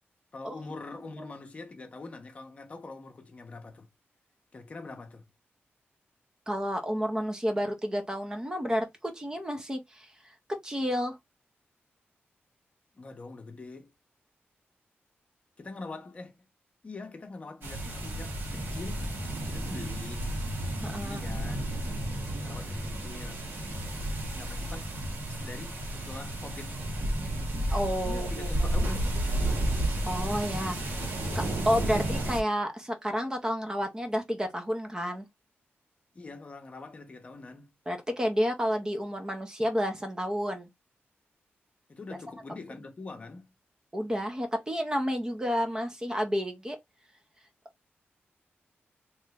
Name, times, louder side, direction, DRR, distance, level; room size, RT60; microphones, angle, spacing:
voice 1, 0.3-3.9 4.5-5.3 12.9-13.9 15.6-16.5 16.8-19.1 19.5-20.3 21.0-21.7 22.4-23.5 24.3-24.8 25.3-26.8 28.0-29.4 36.1-37.8 41.9-43.6, left 3 dB, 30° left, 0.8 m, -44 dB
voice 2, 6.5-10.1 10.6-11.2 20.8-21.2 27.7-28.8 30.1-30.8 31.3-35.3 37.9-40.7 43.9-46.8, equal, 15° right, 0.7 m, -30 dB
sound 1, 17.6-32.4, right 1 dB, 60° right, 1.6 m, -32 dB
3.5 x 3.1 x 3.4 m
wide cardioid pair, 180°, 4 cm